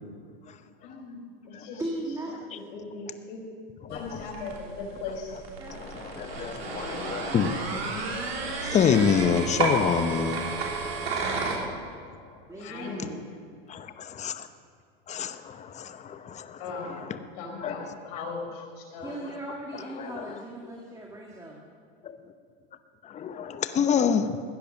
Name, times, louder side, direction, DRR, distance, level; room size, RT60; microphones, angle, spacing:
voice 1, 0.8-1.2 1.5-1.8 2.5-3.4 3.9-5.3 12.6-13.2 16.6-17.0 17.4-19.1, left 4 dB, 60° left, 2 dB, 4.4 m, -38 dB
voice 2, 1.8-2.3 5.6-5.8 8.9-9.7 12.5-13.2 19.0-21.6, right 1 dB, 10° right, -1 dB, 2.0 m, -38 dB
voice 3, 3.9-4.3 5.7-7.5 8.6-10.5 13.7-14.5 15.1-17.1 17.6-17.9 20.0-20.3 22.0-22.2 23.0-24.4, left 7 dB, 25° left, 10 dB, 0.9 m, -27 dB
sound 1, 3.9-11.6, right 3 dB, 85° right, 3.5 m, -32 dB
16.0 x 10.5 x 6.4 m, 2.2 s
hypercardioid pair, 115°, 30 cm